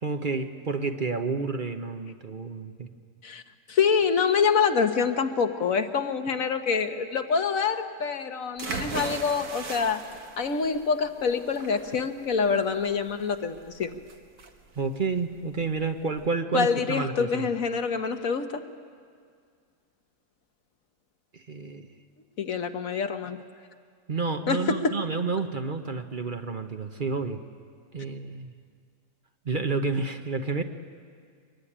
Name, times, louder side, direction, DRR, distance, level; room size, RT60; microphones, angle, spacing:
voice 1, 0.0-2.9 14.8-17.5 21.3-21.9 24.1-27.4 27.9-28.5 29.4-30.6, right 4 dB, 40° right, 6 dB, 1.1 m, -30 dB
voice 2, 3.7-10.0 10.4-13.9 16.5-18.6 22.4-23.4 24.5-25.0, left 6 dB, 80° left, 7 dB, 1.6 m, -26 dB
sound 1, 8.6-16.3, right 4 dB, 80° right, 2.0 m, -39 dB
24.0 x 21.0 x 10.0 m, 2.1 s
omnidirectional pair, 1.4 m